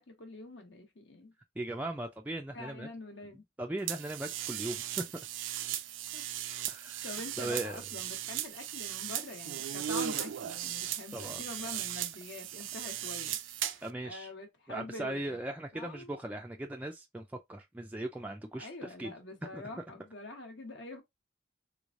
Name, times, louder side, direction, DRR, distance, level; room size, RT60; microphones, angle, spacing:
voice 1, 0.0-1.3 2.5-3.4 6.1-6.2 6.5-6.6 7.0-15.4 15.7-16.1 18.6-21.0, left 2 dB, 65° left, 1.1 m, -45 dB
voice 2, 1.6-2.9 3.6-5.0 6.7-7.1 7.4-7.8 11.1-11.4 13.8-14.3 14.7-19.1 19.5-19.6, right 1 dB, 10° right, 0.3 m, -38 dB
sound 1, 3.9-13.9, right 11 dB, 85° right, 0.4 m, -37 dB
3.4 x 3.1 x 2.4 m
head